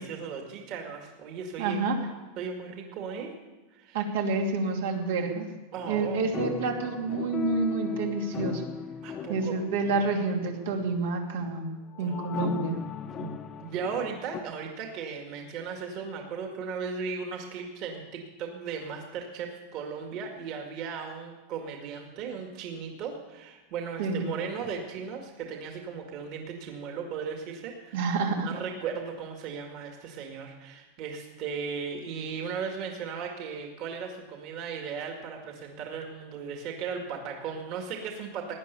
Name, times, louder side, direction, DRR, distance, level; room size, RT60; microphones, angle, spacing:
voice 1, 0.0-1.8 2.4-3.3 3.7-4.1 5.7-6.3 9.0-9.5 12.0-12.4 13.2-13.3 13.6-28.1 28.4-38.5, right 6 dB, 45° right, 2 dB, 2.0 m, -36 dB
voice 2, 1.6-1.9 3.9-5.5 5.9-8.6 9.3-11.7 12.0-12.8 24.0-24.3 27.9-28.5, right 4 dB, 80° right, 1 dB, 2.7 m, -28 dB
sound 1, 5.8-10.9 11.9-14.4, left 7 dB, 25° left, 0.8 m, -37 dB
17.0 x 10.5 x 6.9 m, 1.2 s
supercardioid pair, 155°, 0 cm